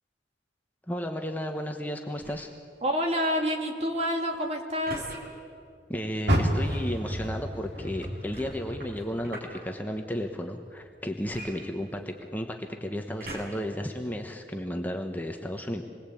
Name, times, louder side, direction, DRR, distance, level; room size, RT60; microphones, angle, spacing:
voice 1, 0.9-2.5 5.9-15.8, equal, 10° left, 3 dB, 1.1 m, -33 dB
sound 1, 2.2-2.6 4.9-5.2 6.6-6.9 8.3-9.6 11.3-12.3 13.2-13.7 14.4-14.5, right 1 dB, 55° right, 5.3 m, -42 dB
voice 2, 2.8-5.0, equal, 35° right, 2 dB, 2.8 m, -28 dB
Car, 6.2-9.5 9.9-11.3 11.7-11.8 12.4-12.5, equal, 70° right, 3.6 m, -30 dB
27.5 x 21.0 x 8.6 m, 2.4 s
head